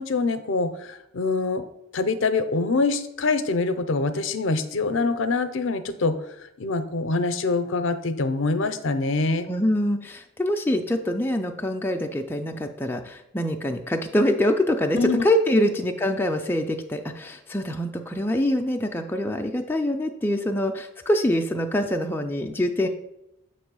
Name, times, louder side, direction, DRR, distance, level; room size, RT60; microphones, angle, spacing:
voice 1, 0.0-1.7 1.9-6.2 6.6-9.5 15.0-15.3, left 3 dB, 65° left, 10 dB, 0.5 m, -24 dB
voice 2, 9.5-22.9, left 1 dB, 10° left, 2 dB, 0.3 m, -24 dB
7.2 x 3.1 x 6.1 m, 0.85 s
head